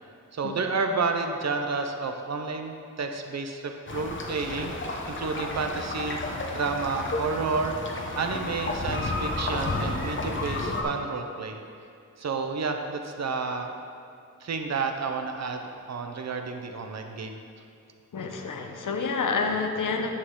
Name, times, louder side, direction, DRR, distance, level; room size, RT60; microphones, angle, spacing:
voice 1, 0.3-4.7 5.1-6.2 6.5-7.8 8.2-11.6 12.2-13.7 14.4-17.4, right 4 dB, 55° right, 5 dB, 0.6 m, -30 dB
sound 1, 3.9-10.8, left 2 dB, 40° left, 0.8 m, -32 dB
voice 2, 18.1-20.1, left 4 dB, 75° left, 4 dB, 0.8 m, -28 dB
9.8 x 6.3 x 3.7 m, 2.4 s
wide cardioid pair, 170°, 32 cm